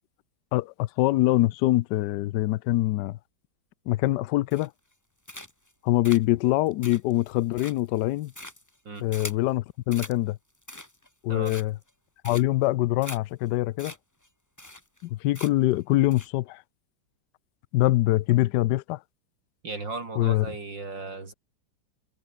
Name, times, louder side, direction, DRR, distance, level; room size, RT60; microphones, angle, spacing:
voice 1, 0.5-3.2 3.9-4.7 5.8-8.3 9.0-10.4 11.2-11.8 12.2-13.9 15.0-16.6 17.7-19.0 20.2-20.5, left 17 dB, 75° left, 1.1 m, -24 dB
sound 1, 4.5-4.9 5.3-5.7 6.0-9.5 9.9-10.2 10.5-11.1 11.4-11.9 12.2-12.7 13.0-13.2 13.5-13.6 13.8-14.0 14.2-14.3 14.6-15.1 15.3-15.7 16.1-16.3, left 1 dB, 10° left, 2.7 m, -42 dB
voice 2, 19.6-21.3, right 3 dB, 70° right, 4.9 m, -36 dB
omnidirectional pair, 2.0 m